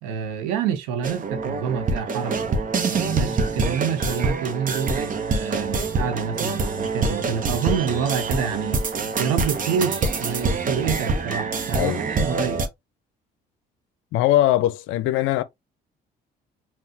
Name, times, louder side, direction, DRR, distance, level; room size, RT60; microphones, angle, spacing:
voice 1, 0.0-2.5 2.9-12.6, right 7 dB, 90° right, 0.9 m, -27 dB
sound 1, 1.0-12.7, right 4 dB, 40° right, 0.9 m, -25 dB
voice 2, 14.1-15.4, left 14 dB, 75° left, 0.5 m, -20 dB
5.6 x 2.4 x 2.8 m
supercardioid pair, 75°, 20 cm